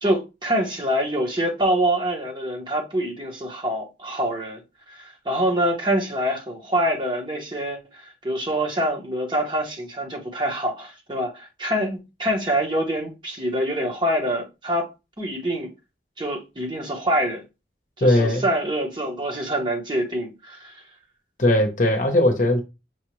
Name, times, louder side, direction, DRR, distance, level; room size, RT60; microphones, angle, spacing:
voice 1, 0.0-4.6 4.9-14.9 15.2-15.7 16.2-17.4 18.0-20.8, right 1 dB, 25° right, 1.1 m, -25 dB
voice 2, 18.0-18.4 21.4-22.6, left 1 dB, 45° left, 0.9 m, -19 dB
6.1 x 2.4 x 3.1 m
head